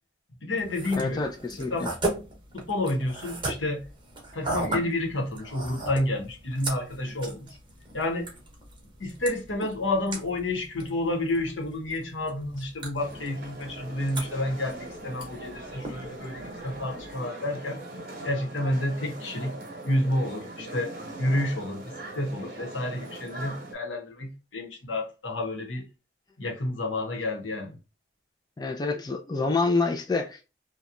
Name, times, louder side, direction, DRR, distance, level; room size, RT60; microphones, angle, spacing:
voice 1, 0.4-1.2 1.6-1.9 2.5-3.8 4.3-7.6 7.9-8.3 9.0-17.8 18.2-19.6 19.8-20.9 21.2-25.9 26.4-27.8, left 1 dB, 85° left, 1.0 m, -30 dB
sound 1, 0.6-17.1, right 2 dB, 25° right, 0.9 m, -38 dB
voice 2, 1.0-1.9 28.6-30.6, left 3 dB, 20° left, 0.3 m, -27 dB
sound 2, 13.0-23.7, right 2 dB, 50° right, 1.0 m, -41 dB
2.9 x 2.2 x 2.3 m
head